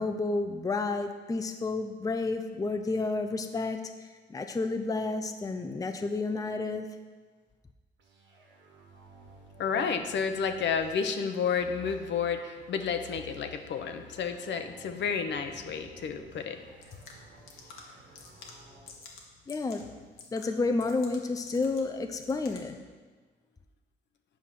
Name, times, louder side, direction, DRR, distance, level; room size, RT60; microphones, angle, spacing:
voice 1, 0.0-3.8 4.3-6.9 19.5-19.8 20.3-22.8, left 3 dB, 15° left, 6 dB, 0.5 m, -30 dB
sound 1, 8.0-19.0, equal, 70° right, 1.6 m, -53 dB
voice 2, 9.6-16.6, left 6 dB, 65° left, 6 dB, 0.9 m, -31 dB
sound 2, 16.6-22.8, left 4 dB, 90° left, 1.4 m, -51 dB
8.4 x 4.9 x 5.9 m, 1.4 s
cardioid pair, 90°, 20 cm